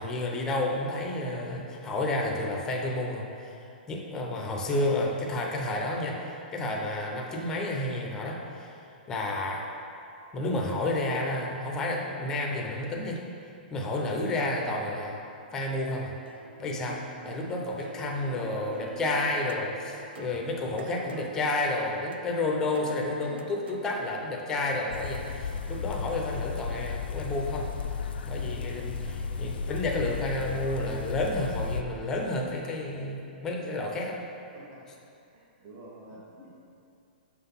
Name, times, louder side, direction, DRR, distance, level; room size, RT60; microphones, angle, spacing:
voice 1, 0.0-3.6 3.9-6.2 6.5-8.7 9.1-9.7 10.3-13.2 13.7-15.2 15.5-16.1 16.6-19.7 20.2-27.7 28.2-29.0 29.4-34.2 36.4-36.5, left 2 dB, 10° left, 0 dB, 0.5 m, -30 dB
sound 1, 16.1-23.9, right 5 dB, 85° right, 0.5 m, -48 dB
voice 2, 18.2-18.7 19.7-20.1 20.8-21.2 25.2-25.6 29.1-29.3 34.5-34.8 35.3-36.5, right 2 dB, 30° right, -5 dB, 1.3 m, -48 dB
sound 2, 24.9-31.8, left 5 dB, 75° left, 0.4 m, -34 dB
6.1 x 3.8 x 5.6 m, 2.6 s
hypercardioid pair, 165°, 6 cm